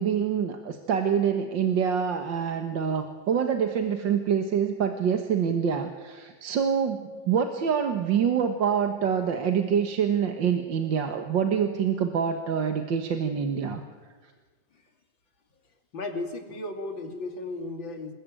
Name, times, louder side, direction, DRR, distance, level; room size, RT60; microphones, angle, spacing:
voice 1, 0.0-13.8, right 7 dB, 75° right, 6 dB, 2.1 m, -26 dB
voice 2, 15.9-18.1, left 2 dB, 85° left, 5 dB, 3.4 m, -35 dB
27.5 x 21.0 x 9.2 m, 1.4 s
omnidirectional pair, 2.0 m